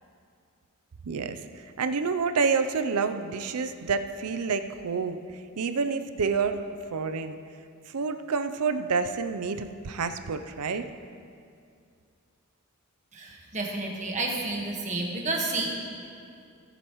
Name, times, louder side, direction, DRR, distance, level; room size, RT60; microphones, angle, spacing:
voice 1, 1.0-1.5 1.8-6.6 6.9-7.4 7.9-10.8, right 5 dB, 90° right, 9 dB, 0.6 m, -28 dB
voice 2, 13.1-15.7, right 2 dB, 35° right, 0 dB, 1.4 m, -30 dB
19.5 x 8.0 x 3.1 m, 2.4 s
head